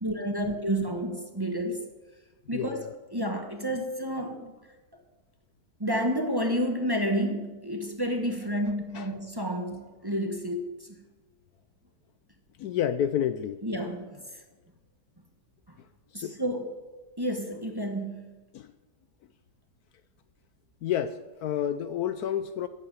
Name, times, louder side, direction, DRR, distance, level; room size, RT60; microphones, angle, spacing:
voice 1, 0.0-1.8 2.5-2.8 3.1-4.5 5.8-10.9 13.6-14.2 16.1-16.7 17.2-18.3, equal, 15° right, 4 dB, 1.2 m, -30 dB
voice 2, 2.5-2.9 8.9-9.1 12.6-13.6 16.1-16.3 18.5-18.7 20.8-22.7, left 10 dB, 70° left, 12 dB, 1.0 m, -30 dB
13.0 x 8.2 x 9.2 m, 1.2 s
omnidirectional pair, 1.8 m